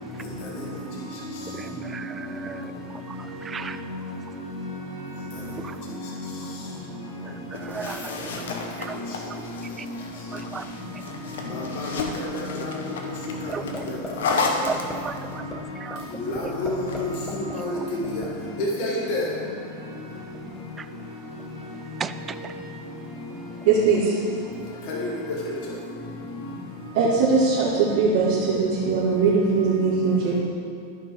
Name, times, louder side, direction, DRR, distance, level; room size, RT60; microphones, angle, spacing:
voice 1, 1.6-2.7 3.1-3.8 5.6-5.8 7.3-8.4 8.8-9.0 9.8-9.9 10.3-10.7 13.5-13.6 14.7-15.4 15.8-16.0 20.8-20.9 22.0-22.1 22.4-22.5, right 6 dB, 20° right, 11 dB, 0.3 m, -35 dB
sound 1, 7.5-15.4 16.6-17.4, left 3 dB, 85° left, 1.1 m, -32 dB
voice 2, 11.5-12.1 12.3-13.1 13.4-13.5 13.8-13.9 16.3-17.7 18.1-18.2 18.6-19.2 24.9-25.1, left 2 dB, 50° left, -4 dB, 1.5 m, -28 dB
sound 2, 13.5-13.8 14.0-14.4 14.7-14.9 15.3-15.5 15.9-16.0 16.3-17.0 17.3-18.3, left 1 dB, 10° left, 1.2 m, -35 dB
voice 3, 23.7-24.1 26.9-30.4, right 4 dB, 60° right, -9 dB, 2.1 m, -20 dB
13.5 x 5.7 x 3.8 m, 2.6 s
supercardioid pair, 140°, 0 cm